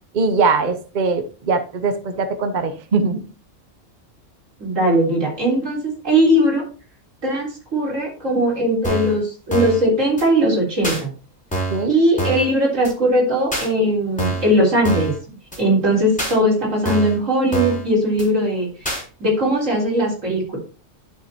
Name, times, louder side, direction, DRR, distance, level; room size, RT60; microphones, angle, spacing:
voice 1, 0.1-3.2 11.7-11.9, right 4 dB, 45° right, 8 dB, 0.8 m, -21 dB
voice 2, 4.6-6.6 7.2-11.1 11.9-15.1 15.6-18.7 19.2-20.6, equal, 80° right, -3 dB, 4.0 m, -19 dB
sound 1, 8.8-9.2 9.5-9.8 10.2-10.3 10.8-11.0 11.5-11.8 12.2-12.5 12.8-12.9 13.5-13.7 14.2-14.5 14.8-15.2 15.5-15.6 16.2-16.4 16.9-17.2 17.5-17.8 18.2-18.3 18.9-19.0, right 2 dB, 5° left, 3.5 m, -25 dB
11.5 x 6.4 x 2.8 m, 0.37 s
omnidirectional pair, 1.3 m